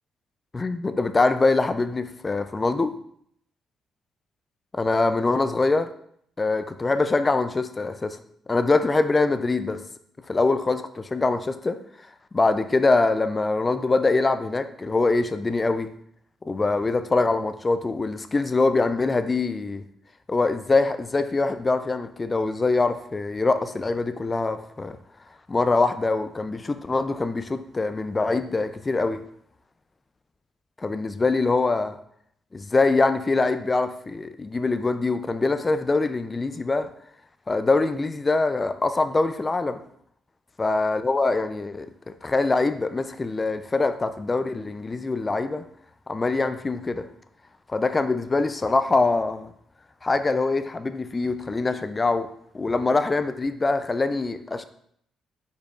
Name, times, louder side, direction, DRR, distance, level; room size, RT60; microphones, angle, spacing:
voice 1, 0.5-3.0 4.7-5.9 6.4-8.2 8.5-9.8 10.3-11.8 12.3-15.9 16.4-19.8 20.3-25.0 25.5-29.2 30.8-32.0 32.5-36.9 37.5-39.8 40.6-45.6 46.1-47.1 47.7-49.5 50.0-52.3 52.5-54.6, left 3 dB, 25° left, 10 dB, 0.3 m, -24 dB
5.0 x 4.3 x 2.4 m, 0.67 s
cardioid pair, 90°, 0 cm